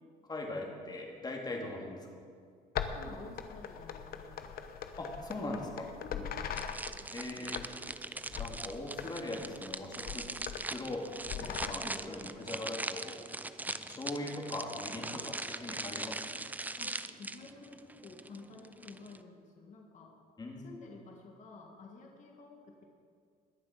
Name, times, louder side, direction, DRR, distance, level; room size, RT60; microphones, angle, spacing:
voice 1, 0.3-2.1 5.0-5.9 7.1-7.7 8.4-10.3 10.7-11.1 11.4-13.2 13.8-16.4 20.4-20.8, left 2 dB, 25° left, 1 dB, 2.3 m, -40 dB
sound 1, 2.8-7.0 7.5-7.9 8.3-8.6 9.0-9.1 9.4-9.6 10.0-10.7 11.2-11.7, left 8 dB, 60° left, 0.9 m, -40 dB
voice 2, 2.9-4.2 6.0-6.3 11.7-12.0 16.8-20.1 20.6-22.8, left 3 dB, 45° left, 0 dB, 1.9 m, -51 dB
sound 2, 6.6-19.2, right 2 dB, 10° right, 0.5 m, -41 dB
21.0 x 7.2 x 5.1 m, 2.2 s
cardioid pair, 110°, 17 cm